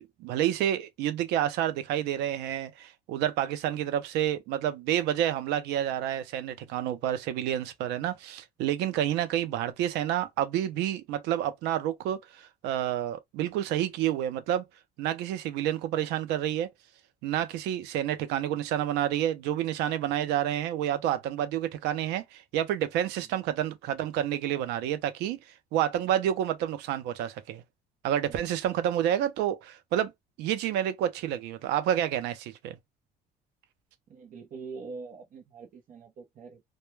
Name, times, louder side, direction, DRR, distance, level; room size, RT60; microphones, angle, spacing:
voice 1, 0.0-14.7 15.0-16.7 17.2-25.4 25.7-27.6 28.0-30.1 30.4-32.8, right 11 dB, 90° right, 0.6 m, -29 dB
voice 2, 34.1-36.6, right 4 dB, 50° right, 0.7 m, -44 dB
2.2 x 2.2 x 3.1 m
cardioid pair, 110°, 17 cm